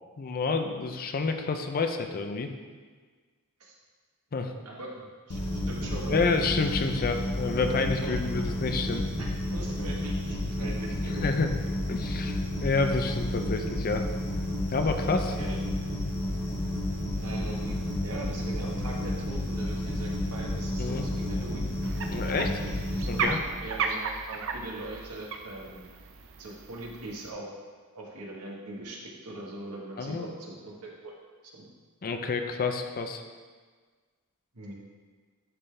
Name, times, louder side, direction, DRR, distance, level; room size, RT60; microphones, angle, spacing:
voice 1, 0.2-2.5 4.3-4.5 6.1-9.0 10.6-10.7 11.2-11.5 11.9-14.1 14.7-15.4 20.8-21.1 22.1-22.5 23.1-23.4 30.0-30.3 32.0-33.2, left 4 dB, 40° left, 6 dB, 0.5 m, -29 dB
voice 2, 4.6-6.3 8.0-8.2 9.2-9.3 9.5-11.3 15.4-15.6 17.2-21.7 22.2-22.7 23.1-23.3 23.6-25.8 26.4-27.5 27.9-30.7 31.0-31.1 31.6-31.7 34.5-34.7, right 2 dB, 85° right, -3 dB, 1.4 m, -41 dB
sound 1, 5.3-23.2, left 1 dB, 75° left, 1.2 m, -31 dB
sound 2, 21.8-27.3, right 5 dB, 65° right, 0.6 m, -35 dB
11.0 x 3.8 x 3.3 m, 1.5 s
head